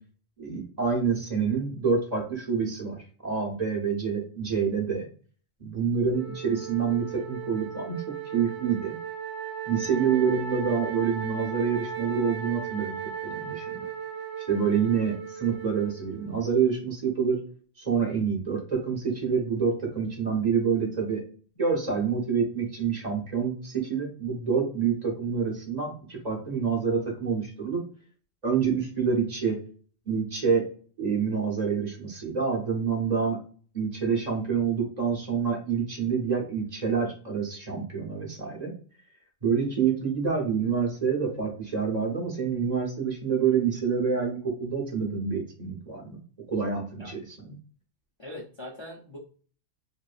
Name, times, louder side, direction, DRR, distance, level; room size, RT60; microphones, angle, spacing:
voice 1, 0.4-5.1 5.6-8.0 8.3-9.0 9.7-13.0 13.2-13.9 14.5-17.4 17.8-21.2 21.6-27.8 28.4-29.6 30.1-30.7 31.0-33.4 33.7-38.7 39.4-46.2 46.5-47.6, right 6 dB, 40° right, -1 dB, 0.8 m, -27 dB
Wind instrument woodwind instrument, 6.1-16.5, right 8 dB, 70° right, 0.8 m, -37 dB
voice 2, 48.2-49.2, left 1 dB, 50° left, -3 dB, 0.3 m, -41 dB
2.9 x 2.5 x 2.4 m, 0.42 s
omnidirectional pair, 1.3 m